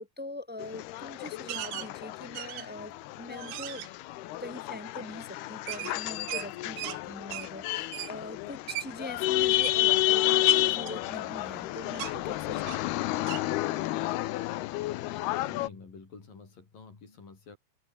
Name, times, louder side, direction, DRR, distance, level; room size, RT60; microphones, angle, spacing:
voice 1, 0.0-3.9 4.4-12.9, left 1 dB, ahead, 4.3 m, -43 dB
sound 1, 0.6-15.7, left 16 dB, 80° left, 3.0 m, -30 dB
sound 2, 1.5-1.9 2.3-2.8 3.3-3.9 5.7-7.0 7.3-7.5 7.9-8.1 8.7-8.9 9.5-9.8 10.5-11.6 11.9-12.2 12.6-12.9 13.3-13.4, right 16 dB, 80° right, 2.9 m, -38 dB
voice 2, 15.4-17.6, left 4 dB, 60° left, 7.6 m, -49 dB
open air
omnidirectional pair, 4.5 m